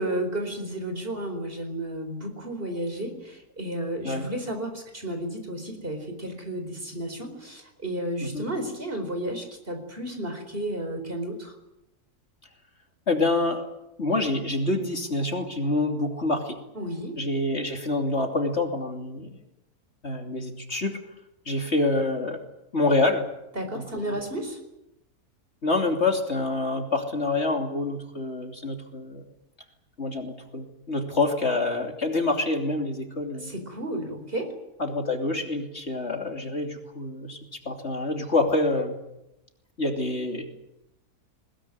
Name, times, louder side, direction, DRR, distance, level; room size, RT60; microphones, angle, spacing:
voice 1, 0.0-11.5 16.7-17.1 23.6-24.6 33.4-34.5, right 1 dB, 35° right, 6 dB, 4.7 m, -32 dB
voice 2, 13.1-13.7 14.0-16.6 17.2-19.3 20.0-21.0 21.4-22.4 22.7-23.3 23.7-24.2 25.6-29.2 30.0-33.5 34.8-37.4 37.6-39.0 39.8-40.5, left 2 dB, 45° left, 3 dB, 3.2 m, -27 dB
21.0 x 21.0 x 9.6 m, 0.89 s
omnidirectional pair, 1.6 m